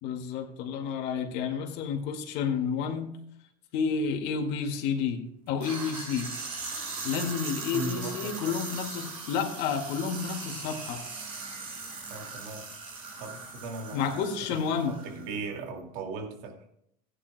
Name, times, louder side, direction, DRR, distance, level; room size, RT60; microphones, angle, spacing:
voice 1, 0.0-3.2 3.7-6.3 7.0-11.0 13.9-14.9, left 6 dB, 65° left, 3 dB, 2.0 m, -30 dB
sound 1, 5.6-15.4, right 4 dB, 90° right, 4.7 m, -39 dB
voice 2, 7.7-8.6 12.1-12.7 13.2-14.6 14.9-16.7, right 3 dB, 75° right, 3 dB, 2.2 m, -38 dB
16.0 x 9.9 x 2.2 m, 0.72 s
hypercardioid pair, 80°, 19 cm